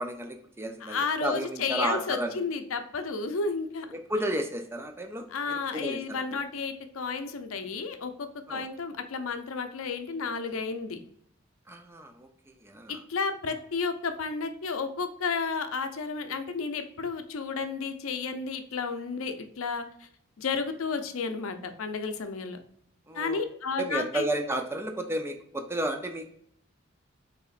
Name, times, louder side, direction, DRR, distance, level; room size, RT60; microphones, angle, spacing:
voice 1, 0.0-2.4 3.9-6.2 8.5-8.6 11.7-13.0 23.1-23.4 23.8-26.3, right 1 dB, 10° right, 5 dB, 0.5 m, -32 dB
voice 2, 0.8-3.9 5.3-11.0 12.9-20.1 20.4-22.6 23.1-24.2, left 5 dB, 85° left, 8 dB, 0.6 m, -32 dB
4.9 x 3.4 x 2.5 m, 0.69 s
head